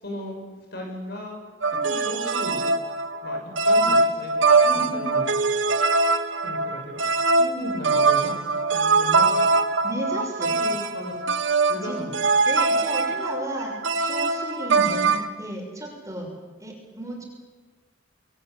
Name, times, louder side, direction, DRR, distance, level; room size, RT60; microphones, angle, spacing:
voice 1, 0.0-0.4 0.7-1.4 1.7-2.6 3.2-4.3 4.7-5.2 6.4-7.1 7.5-8.4 8.7-9.5 10.5-11.2 11.7-12.1, left 1 dB, 55° left, 2 dB, 6.8 m, -36 dB
sound 1, 1.6-15.3, right 3 dB, 75° right, 1.4 m, -22 dB
voice 2, 1.7-2.0 4.6-5.1 7.4-7.8 9.8-10.5 11.7-12.0 12.5-16.3 16.6-17.2, right 1 dB, 15° right, 0 dB, 6.4 m, -34 dB
27.5 x 21.5 x 8.5 m, 1.3 s
head